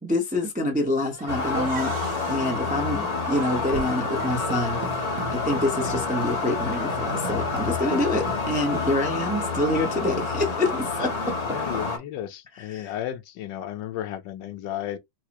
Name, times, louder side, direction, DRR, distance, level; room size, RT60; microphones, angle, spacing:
voice 1, 0.0-5.0 5.3-11.3 12.6-12.9, left 1 dB, 10° right, 0.4 m, -27 dB
sound 1, 1.1-8.5, right 6 dB, 50° right, 1.1 m, -38 dB
sound 2, 1.3-12.0, left 4 dB, 40° left, 0.6 m, -28 dB
voice 2, 11.4-15.0, left 11 dB, 80° left, 1.4 m, -34 dB
4.7 x 2.0 x 2.9 m
omnidirectional pair, 1.9 m